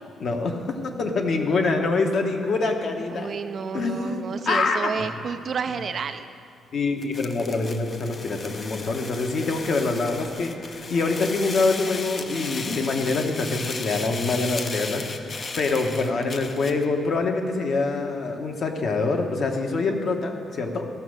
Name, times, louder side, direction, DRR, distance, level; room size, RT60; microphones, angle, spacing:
voice 1, 0.2-0.6 1.0-3.3 3.7-4.9 6.7-20.9, left 3 dB, 45° left, 3 dB, 1.1 m, -25 dB
voice 2, 3.1-6.3, right 6 dB, 40° right, 9 dB, 0.4 m, -30 dB
sound 1, 7.0-16.9, left 3 dB, 30° left, 0.6 m, -35 dB
14.0 x 6.2 x 6.4 m, 2.4 s
cardioid pair, 170°, 0 cm